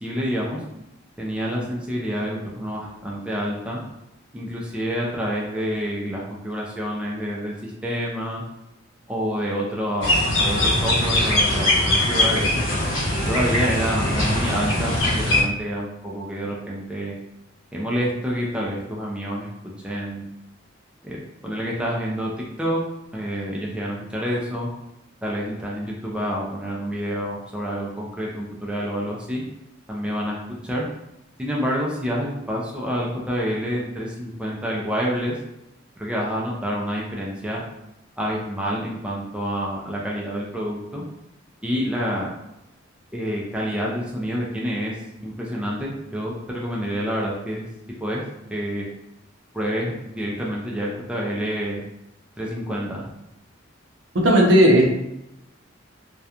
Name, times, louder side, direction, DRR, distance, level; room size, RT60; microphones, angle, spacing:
voice 1, 0.0-0.6 1.2-3.8 4.3-8.4 9.1-12.7 13.3-17.1 17.7-19.5 19.8-20.2 21.0-22.3 22.6-22.8 23.1-24.7 25.2-29.4 29.9-30.4 30.6-30.8 31.4-35.3 36.0-37.6 38.2-41.0 41.6-42.3 43.1-44.9 45.2-47.7 48.0-48.2 48.5-48.8 49.5-51.8 52.4-53.1, equal, 5° right, -4 dB, 0.3 m, -28 dB
sound 1, 10.0-15.4, left 1 dB, 70° left, 0.9 m, -21 dB
voice 2, 54.1-54.9, equal, 65° right, -1 dB, 0.6 m, -14 dB
2.8 x 2.2 x 2.4 m, 0.87 s
head